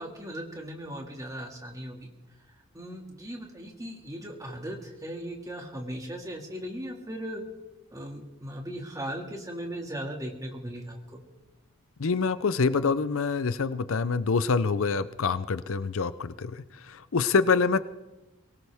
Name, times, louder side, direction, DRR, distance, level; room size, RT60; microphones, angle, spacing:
voice 1, 0.0-2.1 2.7-7.4 7.9-11.2, equal, 15° right, 2 dB, 2.1 m, -38 dB
voice 2, 12.0-17.8, left 4 dB, 65° left, 15 dB, 0.5 m, -26 dB
22.5 x 18.0 x 3.5 m, 1.1 s
head